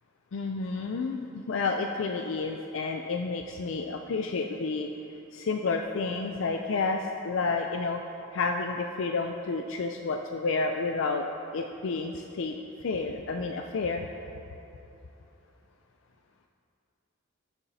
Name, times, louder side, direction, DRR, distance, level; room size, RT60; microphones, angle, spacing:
voice 1, 0.3-4.9 5.3-8.0 8.3-11.2 11.5-12.5 12.8-14.1, left 4 dB, 65° left, 4 dB, 0.4 m, -30 dB
17.0 x 7.0 x 2.7 m, 2.8 s
head